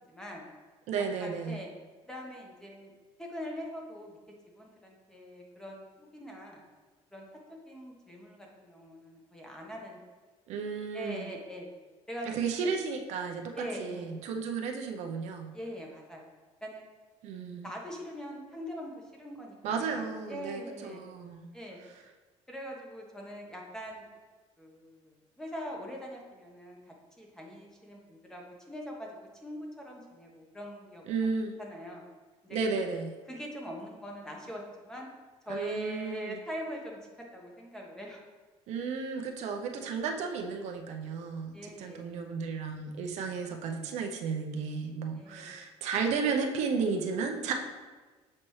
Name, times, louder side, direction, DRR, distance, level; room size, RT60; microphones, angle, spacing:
voice 1, 0.1-0.5 1.2-1.7 2.0-2.9 3.2-4.2 4.5-6.6 7.1-10.0 10.9-11.7 12.1-12.3 13.5-14.1 15.5-16.3 16.6-16.8 17.6-21.1 21.5-21.8 22.5-24.1 24.6-26.8 27.2-31.0 31.6-32.0 32.4-32.6 33.3-35.1 35.5-37.0 37.3-38.2 41.5-42.2 45.2-45.6, equal, 5° left, -1 dB, 1.1 m, -42 dB
voice 2, 0.9-1.6 10.5-11.4 12.3-15.5 17.2-17.7 19.6-21.5 21.8-22.0 31.0-31.5 32.5-33.1 35.5-36.4 38.7-47.5, right 5 dB, 70° right, 3 dB, 0.6 m, -33 dB
7.5 x 4.3 x 3.1 m, 1.3 s
cardioid pair, 125°, 12 cm